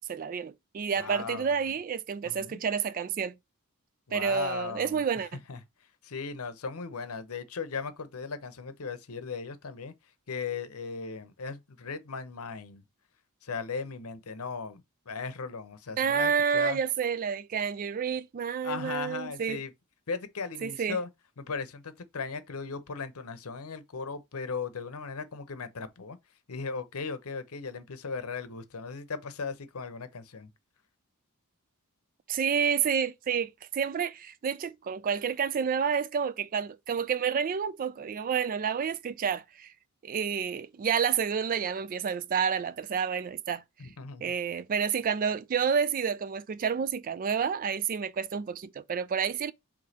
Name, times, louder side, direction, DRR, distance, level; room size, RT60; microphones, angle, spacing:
voice 1, 0.1-3.3 4.1-5.3 16.0-19.6 20.6-21.0 32.3-39.7 40.0-43.6 44.2-49.5, right 7 dB, 40° right, 0.3 m, -29 dB
voice 2, 1.0-1.7 2.2-2.6 4.1-5.1 5.5-5.6 6.0-9.9 10.3-12.8 13.4-16.8 18.6-19.7 20.1-21.1 21.4-26.2 26.5-30.5 43.8-44.2, left 5 dB, 75° left, 0.8 m, -37 dB
5.1 x 3.5 x 2.8 m
head